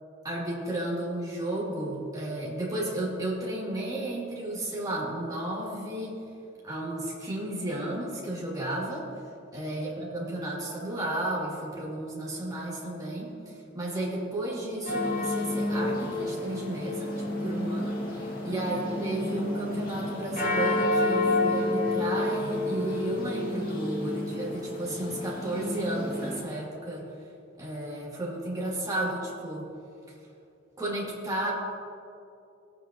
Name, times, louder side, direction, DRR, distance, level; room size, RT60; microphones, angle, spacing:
voice 1, 0.2-6.2 6.6-9.1 9.5-27.1 27.6-29.7 30.8-31.5, right 1 dB, 20° right, -6 dB, 2.6 m, -33 dB
sound 1, 14.9-26.4, left 2 dB, 45° left, 2.0 m, -30 dB
18.0 x 9.0 x 2.9 m, 2.7 s
head